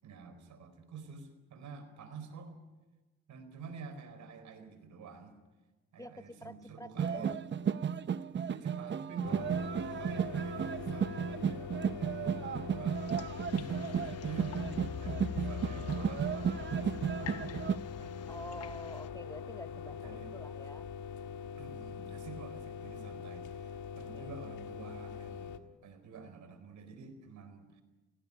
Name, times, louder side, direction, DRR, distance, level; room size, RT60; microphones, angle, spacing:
voice 1, 0.0-2.5 3.3-5.4 5.9-7.4 8.5-12.4 12.7-18.5 20.0-20.3 21.6-25.6 25.8-27.8, right 5 dB, 70° right, 10 dB, 4.5 m, -49 dB
voice 2, 6.0-7.4 18.3-20.9 24.1-24.3, left 1 dB, 10° left, 12 dB, 0.6 m, -47 dB
sound 1, 7.0-17.8, right 7 dB, 40° right, 0.7 m, -34 dB
sound 2, 9.2-25.6, left 7 dB, 80° left, 1.6 m, -43 dB
sound 3, 12.9-19.1, left 8 dB, 55° left, 1.0 m, -45 dB
18.0 x 17.0 x 10.0 m, 1.2 s
cardioid pair, 90°, 30 cm